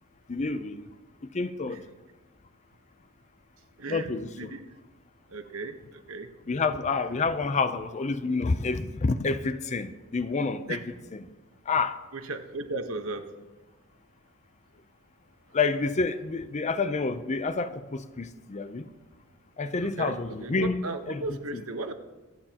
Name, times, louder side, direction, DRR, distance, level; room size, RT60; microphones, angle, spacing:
voice 1, 0.3-0.8 1.3-1.8 3.9-4.5 6.5-11.3 11.7-12.0 15.5-18.8 19.6-21.6, left 4 dB, 35° left, 0.5 m, -29 dB
voice 2, 5.3-6.3 10.7-10.8 12.1-13.2 19.8-20.5 20.8-21.9, right 2 dB, 75° right, 1.1 m, -36 dB
24.5 x 9.1 x 2.9 m
head